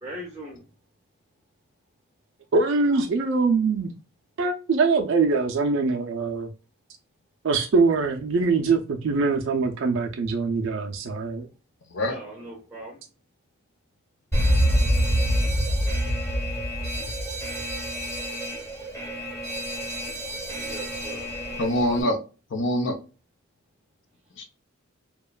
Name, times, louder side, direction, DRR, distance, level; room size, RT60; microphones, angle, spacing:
voice 1, 0.0-0.6 12.1-13.0 14.8-14.9 15.7-15.8 20.6-21.6, right 1 dB, 10° right, 0.6 m, -40 dB
voice 2, 2.5-3.9 4.4-6.5 7.4-11.5, right 4 dB, 60° right, 0.4 m, -23 dB
Alarm, 14.3-22.0, equal, 15° left, 0.9 m, -26 dB
voice 3, 21.6-22.2 22.5-23.0 24.4-24.5, left 1 dB, 60° left, 0.6 m, -24 dB
2.9 x 2.2 x 2.2 m
head